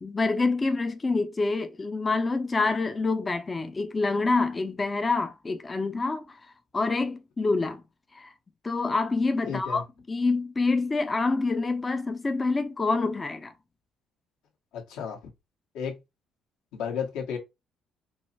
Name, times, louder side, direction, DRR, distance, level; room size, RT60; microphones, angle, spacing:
voice 1, 0.0-7.8 8.1-8.3 8.6-13.5, left 3 dB, 20° left, 0.3 m, -27 dB
voice 2, 9.5-9.8 14.7-15.2 15.7-16.0 16.7-17.4, left 7 dB, 85° left, 1.2 m, -32 dB
4.6 x 2.0 x 2.7 m
cardioid pair, 125°, 0 cm